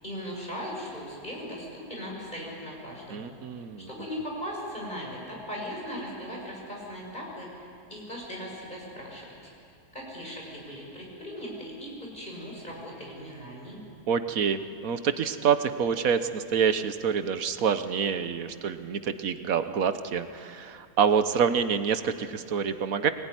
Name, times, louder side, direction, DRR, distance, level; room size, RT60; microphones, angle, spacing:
voice 1, 0.0-3.3 3.9-9.5 9.9-13.8, equal, 30° left, -3 dB, 6.8 m, -38 dB
voice 2, 3.1-3.9 14.1-23.1, right 7 dB, 65° right, 10 dB, 1.4 m, -27 dB
24.0 x 19.5 x 9.9 m, 2.4 s
omnidirectional pair, 1.6 m